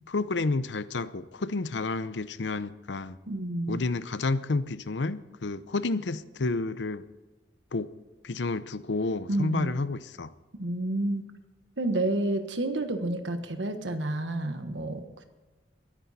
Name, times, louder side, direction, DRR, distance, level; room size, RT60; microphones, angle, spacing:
voice 1, 0.1-3.2 3.7-7.0 7.7-7.9 8.2-10.3, left 3 dB, 75° left, 15 dB, 0.7 m, -30 dB
voice 2, 3.3-3.8 9.3-9.8 10.6-11.2 11.8-15.3, right 1 dB, 85° right, 7 dB, 1.2 m, -30 dB
22.0 x 10.0 x 4.1 m, 1.2 s
head